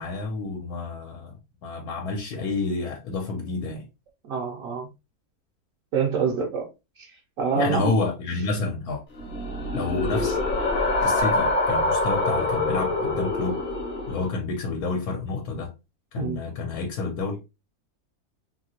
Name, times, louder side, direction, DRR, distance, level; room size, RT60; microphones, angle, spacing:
voice 1, 0.0-1.3 1.6-3.8 7.5-9.0 9.7-10.4 11.0-13.6 14.1-15.7 16.1-17.4, left 3 dB, 80° left, 1.2 m, -29 dB
voice 2, 4.2-4.9 5.9-6.6 7.4-7.9 16.2-16.4, right 5 dB, 70° right, 1.0 m, -25 dB
Scary Monster, 9.1-14.3, left 2 dB, 45° left, 0.8 m, -25 dB
2.9 x 2.7 x 2.8 m
omnidirectional pair, 1.6 m